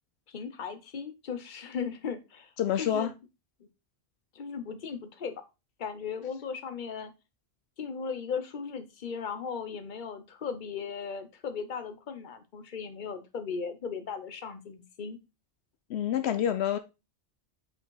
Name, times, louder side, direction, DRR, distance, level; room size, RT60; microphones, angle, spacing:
voice 1, 0.3-2.5 2.8-3.1 4.3-5.4 5.8-7.1 7.8-15.2, left 6 dB, 50° left, 1.0 m, -37 dB
voice 2, 2.6-3.1 15.9-16.8, left 10 dB, 80° left, 0.9 m, -27 dB
5.3 x 5.0 x 3.8 m
omnidirectional pair, 1.1 m